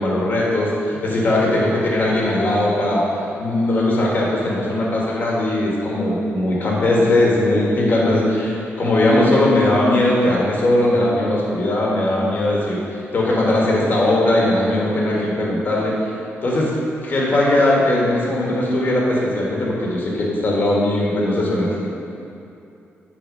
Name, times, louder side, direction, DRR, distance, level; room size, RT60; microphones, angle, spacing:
voice 1, 0.0-3.0 3.4-12.8 13.1-16.0 16.4-16.7 17.0-21.8, left 1 dB, 45° left, -4 dB, 1.8 m, -19 dB
9.8 x 4.3 x 5.5 m, 2.7 s
wide cardioid pair, 140°, 5 cm